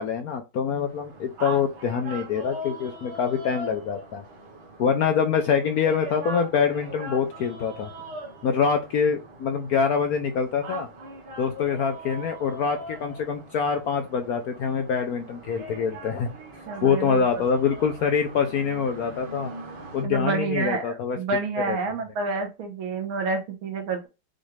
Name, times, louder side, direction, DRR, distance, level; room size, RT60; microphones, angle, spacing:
voice 1, 0.0-4.2 4.8-7.9 8.4-10.9 11.4-16.3 16.8-19.5 19.9-21.4 21.7-22.0, left 6 dB, 75° left, 6 dB, 0.8 m, -25 dB
sound 1, 0.8-20.0, right 1 dB, 60° right, 1.7 m, -41 dB
voice 2, 16.7-17.2 20.0-20.8 21.2-24.1, right 4 dB, 80° right, 3 dB, 2.2 m, -28 dB
6.3 x 2.5 x 3.2 m, 0.25 s
omnidirectional pair, 2.3 m